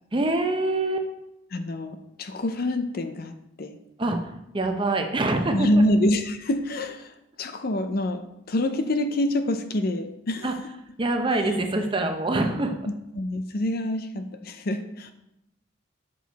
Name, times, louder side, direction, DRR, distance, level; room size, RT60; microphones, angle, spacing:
voice 1, 0.1-1.1 4.0-5.7 10.4-10.5 11.0-12.7, right 2 dB, 25° right, 5 dB, 0.7 m, -25 dB
voice 2, 1.5-3.8 5.5-7.1 7.4-10.5 12.9-15.1, left 1 dB, 50° left, 8 dB, 0.5 m, -26 dB
6.5 x 6.1 x 4.1 m, 0.86 s
head